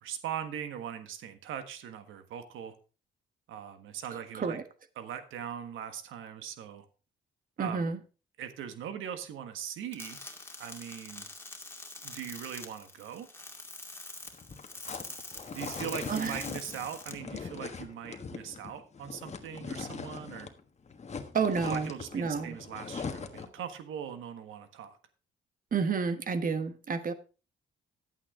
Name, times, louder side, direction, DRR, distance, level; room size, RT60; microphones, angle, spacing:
voice 1, 0.0-2.7 3.5-4.6 5.0-6.8 7.6-7.9 8.4-10.2 10.6-11.3 12.0-13.3 15.5-20.5 21.6-25.0, right 9 dB, 80° right, 9 dB, 1.4 m, -40 dB
voice 2, 4.1-4.6 7.6-8.0 16.1-16.4 21.3-22.6 25.7-27.1, right 5 dB, 45° right, 10 dB, 1.3 m, -30 dB
sound 1, 9.9-17.1, left 2 dB, 10° left, 2.3 m, -45 dB
sound 2, 14.3-20.6 20.9-23.6, left 5 dB, 35° left, 1.4 m, -41 dB
11.0 x 8.7 x 3.7 m, 0.34 s
cardioid pair, 90°, 20 cm